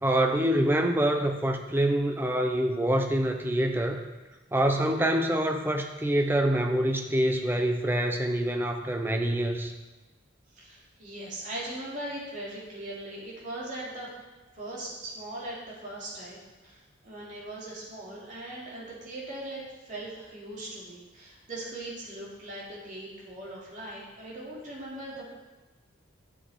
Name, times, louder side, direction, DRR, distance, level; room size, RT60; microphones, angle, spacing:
voice 1, 0.0-4.0 4.5-9.7, right 1 dB, 10° right, 4 dB, 0.6 m, -26 dB
voice 2, 10.6-14.1 14.5-25.2, right 1 dB, 40° right, -6 dB, 2.8 m, -40 dB
10.0 x 7.4 x 4.3 m, 1.2 s
head